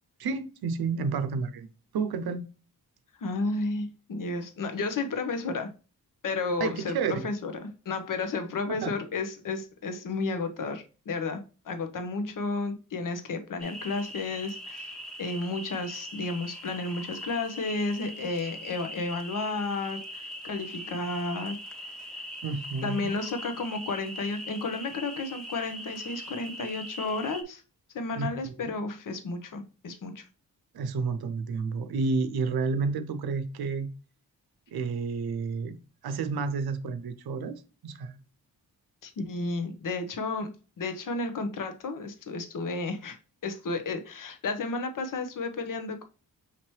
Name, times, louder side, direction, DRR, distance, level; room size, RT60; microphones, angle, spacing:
voice 1, 0.2-1.7 1.9-2.5 6.6-7.3 8.8-8.9 22.4-23.1 28.1-28.7 30.7-33.9 34.7-35.8 36.0-38.1, right 4 dB, 80° right, 0.7 m, -30 dB
voice 2, 3.2-5.7 6.2-21.6 21.8-22.2 22.8-27.6 27.9-30.3 39.0-46.0, left 3 dB, 60° left, 0.8 m, -32 dB
sound 1, 13.6-27.4, equal, ahead, 0.9 m, -41 dB
5.8 x 2.9 x 3.1 m
cardioid pair, 70°, 36 cm